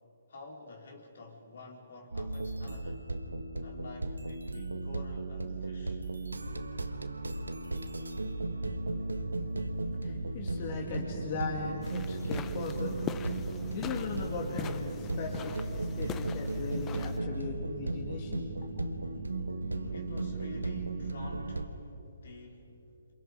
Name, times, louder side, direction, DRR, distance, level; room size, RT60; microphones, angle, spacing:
voice 1, 0.3-3.1 3.6-6.0 13.4-13.8 19.8-22.8, equal, 60° left, 1 dB, 4.2 m, -48 dB
sound 1, 2.1-21.7, right 2 dB, 85° right, 1.5 m, -36 dB
voice 2, 10.0-18.4, left 4 dB, 40° left, -1 dB, 2.7 m, -39 dB
sound 2, 11.8-17.2, left 9 dB, 20° left, 0.8 m, -43 dB
29.0 x 27.0 x 5.2 m, 2.7 s
figure-of-eight pair, 135°, 0 cm